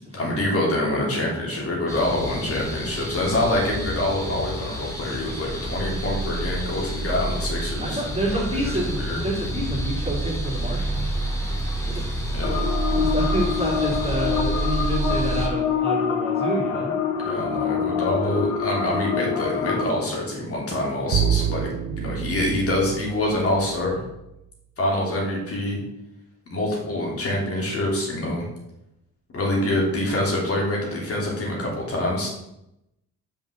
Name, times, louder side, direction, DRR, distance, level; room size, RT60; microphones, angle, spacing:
voice 1, 0.1-8.0 8.3-9.2 12.3-12.6 17.2-21.7 22.0-24.0 24.8-25.8 26.5-28.5 29.3-32.3, left 1 dB, 50° left, -3 dB, 2.8 m, -25 dB
sound 1, 1.9-15.5, right 1 dB, 10° left, 2.3 m, -28 dB
voice 2, 7.8-11.1 11.8-12.0 12.9-16.9 21.8-21.9, right 1 dB, 20° right, -3 dB, 3.2 m, -28 dB
sound 2, 12.4-19.8, left 7 dB, 85° left, 1.1 m, -26 dB
Bowed string instrument, 21.1-24.2, right 10 dB, 65° right, 0.5 m, -27 dB
5.6 x 5.2 x 6.5 m, 0.86 s
cardioid pair, 90°, 30 cm